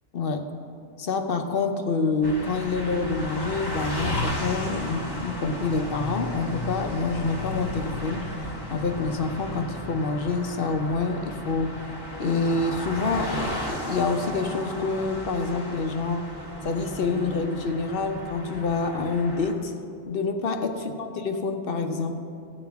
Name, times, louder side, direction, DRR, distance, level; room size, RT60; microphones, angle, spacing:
voice 1, 0.1-0.5 1.0-8.3 8.7-11.8 12.2-16.3 16.6-19.7 20.1-22.2, left 3 dB, 50° left, 6 dB, 0.8 m, -27 dB
sound 1, 2.2-19.5, left 1 dB, 20° left, 1.0 m, -34 dB
16.0 x 9.0 x 3.5 m, 2.6 s
omnidirectional pair, 1.4 m